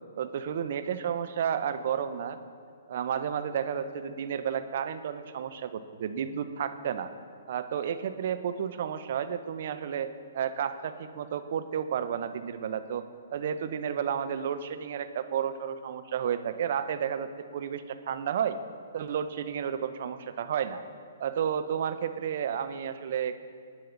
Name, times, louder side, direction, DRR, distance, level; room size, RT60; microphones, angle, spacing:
voice 1, 0.2-2.4 2.9-7.1 7.5-13.0 13.3-18.6 18.9-20.8 21.2-23.3, right 8 dB, 55° right, 10 dB, 0.7 m, -32 dB
18.5 x 9.5 x 3.9 m, 2.2 s
hypercardioid pair, 130°, 0 cm